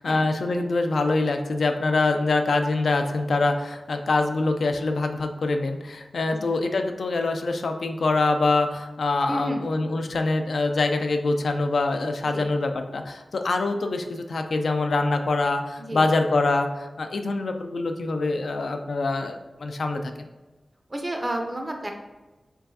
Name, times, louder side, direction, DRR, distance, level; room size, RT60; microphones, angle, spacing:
voice 1, 0.0-20.1, left 3 dB, 85° left, 5 dB, 0.4 m, -24 dB
voice 2, 9.3-9.6 12.3-12.4 15.8-16.0 20.9-21.9, right 1 dB, 25° right, 3 dB, 0.6 m, -30 dB
4.5 x 3.3 x 2.7 m, 1.1 s
wide cardioid pair, 105°, 0 cm